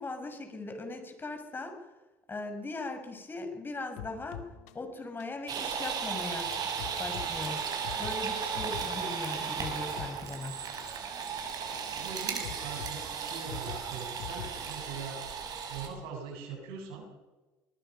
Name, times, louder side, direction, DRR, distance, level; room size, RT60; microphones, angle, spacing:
voice 1, 0.0-1.8 2.3-4.5 4.7-6.5 7.0-7.6 8.0-10.6, left 2 dB, 25° left, 6 dB, 6.1 m, -39 dB
sound 1, 4.0-15.2, left 10 dB, 90° left, 2.1 m, -47 dB
sound 2, 5.5-15.9, right 6 dB, 55° right, 5.7 m, -35 dB
voice 2, 11.9-15.2 15.7-17.1, right 5 dB, 80° right, 2 dB, 8.0 m, -42 dB
24.0 x 20.5 x 5.8 m, 1.2 s
supercardioid pair, 80°, 8 cm